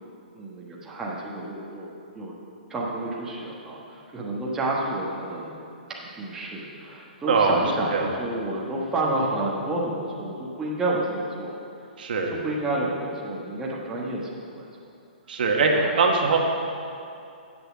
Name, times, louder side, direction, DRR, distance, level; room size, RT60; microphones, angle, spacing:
voice 1, 0.3-2.3 2.7-5.5 6.0-11.6 12.3-14.7 15.7-16.1, right 2 dB, 10° right, -5 dB, 1.2 m, -30 dB
voice 2, 7.3-7.6 7.9-8.1 12.0-12.3 15.3-15.7 16.0-16.4, right 5 dB, 65° right, 1 dB, 1.4 m, -21 dB
8.1 x 6.7 x 7.4 m, 2.5 s
hypercardioid pair, 155°, 5 cm